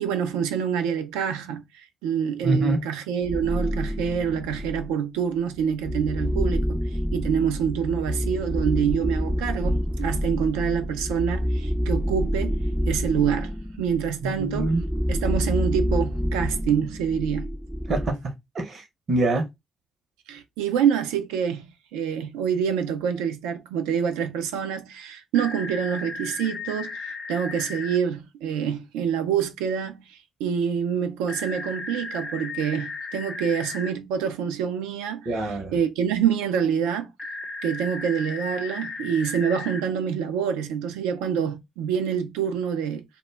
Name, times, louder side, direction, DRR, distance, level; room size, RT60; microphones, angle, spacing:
voice 1, 0.0-6.8 7.1-12.6 12.9-14.7 15.1-17.5 20.3-21.7 21.9-35.4 35.7-37.1 37.6-43.0, right 8 dB, 85° right, 0.4 m, -26 dB
voice 2, 2.4-2.8 14.2-14.8 17.9-19.5 35.3-35.8, right 2 dB, 55° right, 0.7 m, -25 dB
sound 1, 3.2-5.0 5.6-18.1, equal, 5° right, 0.4 m, -28 dB
sound 2, 25.3-28.0 31.3-33.9 37.2-39.8, left 3 dB, 40° left, 0.8 m, -35 dB
2.1 x 2.0 x 3.2 m
hypercardioid pair, 45°, 0 cm